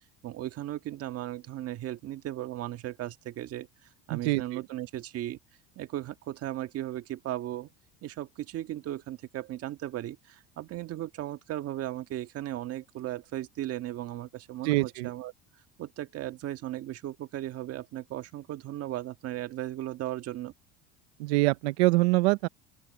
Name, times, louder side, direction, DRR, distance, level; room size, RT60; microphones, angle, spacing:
voice 1, 0.2-3.7 4.1-5.4 5.7-7.7 8.0-15.3 15.8-20.5, right 14 dB, 50° right, 1.6 m, -36 dB
voice 2, 4.1-4.6 14.6-15.1 21.2-22.5, right 22 dB, 90° right, 0.7 m, -25 dB
open air
supercardioid pair, 115°, 31 cm